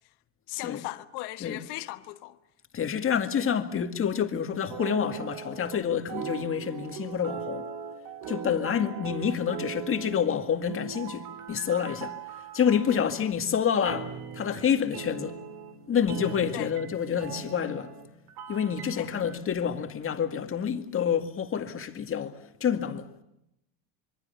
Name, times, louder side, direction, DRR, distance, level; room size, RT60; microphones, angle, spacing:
voice 1, 0.5-2.4 8.7-8.9 16.5-16.7 19.0-19.1, left 18 dB, 65° left, 1.3 m, -37 dB
voice 2, 2.7-7.7 8.3-12.2 12.5-15.4 15.9-17.9 18.5-23.1, left 8 dB, 30° left, 2.1 m, -28 dB
sound 1, 4.7-5.8 6.1-13.3 13.8-19.4, right 8 dB, 60° right, 2.5 m, -40 dB
26.0 x 23.5 x 6.8 m
supercardioid pair, 110°, 41 cm